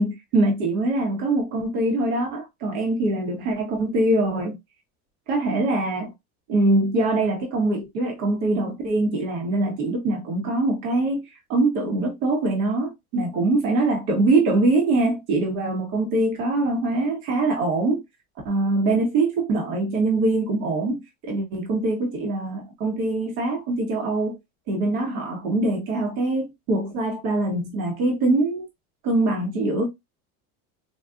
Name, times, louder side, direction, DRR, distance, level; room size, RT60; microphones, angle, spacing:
voice 1, 0.0-4.6 5.3-6.1 6.5-11.2 11.5-18.0 18.4-24.4 24.7-28.7 29.0-29.9, right 2 dB, 85° right, 1.2 m, -23 dB
4.1 x 2.3 x 2.4 m
supercardioid pair, 95°, 42 cm